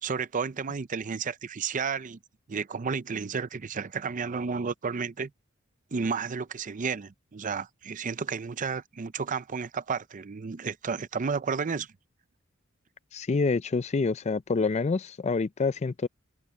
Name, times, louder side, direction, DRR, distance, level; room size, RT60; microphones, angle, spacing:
voice 1, 0.0-2.2 2.5-5.3 5.9-11.9, right 5 dB, 40° right, 0.5 m, -32 dB
voice 2, 13.1-16.1, left 4 dB, 35° left, 0.4 m, -27 dB
head